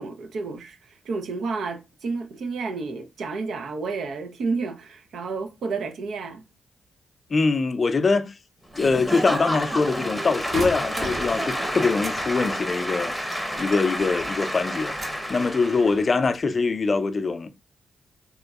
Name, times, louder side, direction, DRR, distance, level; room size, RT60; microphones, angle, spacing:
voice 1, 0.0-6.4, right 4 dB, 75° right, 0.6 m, -31 dB
voice 2, 7.3-8.3 8.8-13.1 13.6-14.9 15.3-17.5, left 4 dB, 45° left, 0.4 m, -23 dB
Applause / Crowd, 8.7-16.1, equal, 5° right, 0.8 m, -29 dB
sound 1, 10.5-12.2 12.4-14.2 14.5-15.3 15.8-16.3, right 2 dB, 50° right, 1.2 m, -36 dB
3.5 x 3.0 x 2.3 m
supercardioid pair, 55°, 0 cm